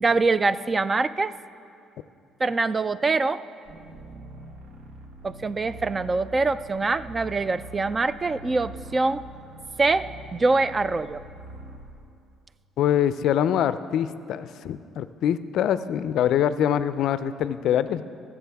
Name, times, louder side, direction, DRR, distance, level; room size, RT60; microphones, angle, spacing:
voice 1, 0.0-1.4 2.4-3.4 5.2-9.2 9.8-11.2, right 3 dB, 30° right, 15 dB, 0.3 m, -24 dB
sound 1, 3.7-11.9, right 2 dB, 75° right, 1.4 m, -43 dB
voice 2, 12.8-18.0, left 10 dB, 70° left, 13 dB, 0.4 m, -24 dB
18.5 x 7.2 x 3.5 m, 2.5 s
supercardioid pair, 80°, 0 cm